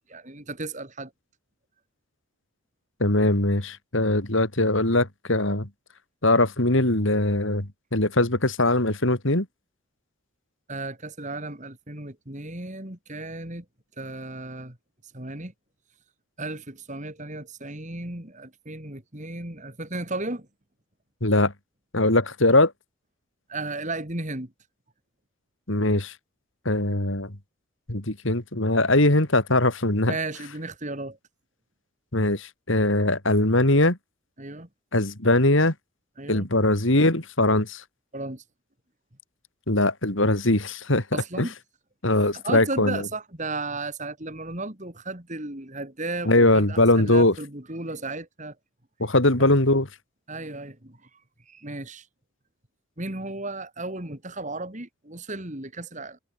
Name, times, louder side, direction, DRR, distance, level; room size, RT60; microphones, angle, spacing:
voice 1, 0.1-1.1 10.7-13.6 14.0-14.8 15.1-15.5 16.4-20.5 23.5-24.5 30.1-31.2 34.4-34.7 36.2-36.5 38.1-38.4 41.1-41.5 42.3-48.5 49.4-49.5 50.3-51.1 51.5-52.1 53.0-56.2, right 2 dB, 35° right, 3.1 m, -34 dB
voice 2, 3.0-5.7 6.2-9.5 21.2-21.5 21.9-22.7 25.7-26.1 26.6-27.4 27.9-30.1 32.1-34.0 34.9-35.7 36.3-37.8 39.7-41.0 41.4-41.5 42.0-43.0 46.2-47.3 49.0-49.9, left 2 dB, 60° left, 3.2 m, -21 dB
head